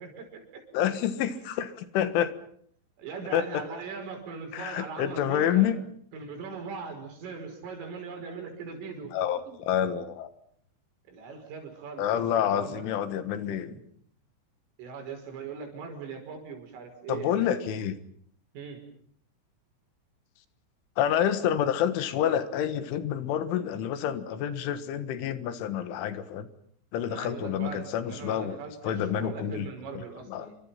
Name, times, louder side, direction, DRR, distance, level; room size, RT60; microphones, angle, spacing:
voice 1, 0.0-0.6 3.0-5.7 6.1-9.1 9.5-9.6 11.1-12.9 13.7-13.8 14.8-17.8 18.5-18.8 27.0-30.6, right 5 dB, 85° right, 5 dB, 8.0 m, -40 dB
voice 2, 0.7-2.3 3.3-3.6 4.5-5.8 9.1-10.3 12.0-13.8 17.1-18.0 21.0-26.5 26.9-28.6 28.8-29.7 30.3-30.5, left 10 dB, 80° left, 12 dB, 3.9 m, -28 dB
29.0 x 25.0 x 5.8 m, 0.62 s
omnidirectional pair, 5.6 m